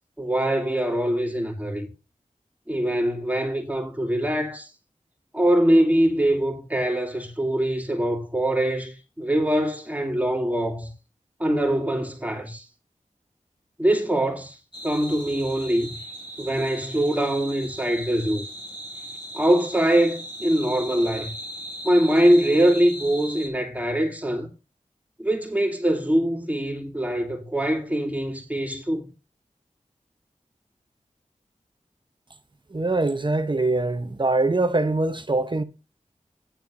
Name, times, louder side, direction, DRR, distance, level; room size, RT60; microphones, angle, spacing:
voice 1, 0.2-1.9 2.7-4.7 5.3-10.9 11.4-12.6 13.8-14.6 14.8-15.9 16.4-18.5 19.3-21.3 21.8-24.5 25.2-29.1, right 1 dB, 10° right, 2.8 m, -23 dB
sound 1, 14.7-23.5, equal, 35° left, 3.7 m, -38 dB
voice 2, 32.7-35.6, right 2 dB, 35° right, 1.0 m, -23 dB
10.5 x 4.4 x 6.4 m
wide cardioid pair, 55°, 13 cm